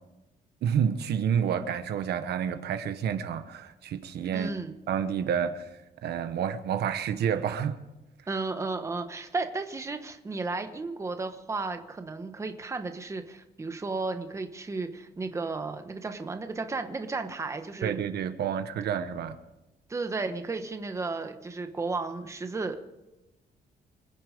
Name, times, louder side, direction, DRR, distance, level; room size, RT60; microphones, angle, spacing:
voice 1, 0.6-4.5 4.9-5.7 6.0-7.8 17.8-19.4, right 8 dB, 75° right, 1.2 m, -29 dB
voice 2, 4.3-4.7 8.3-18.0 19.9-22.8, right 3 dB, 15° right, 1.1 m, -33 dB
27.5 x 9.9 x 5.1 m
cardioid pair, 175°, 17 cm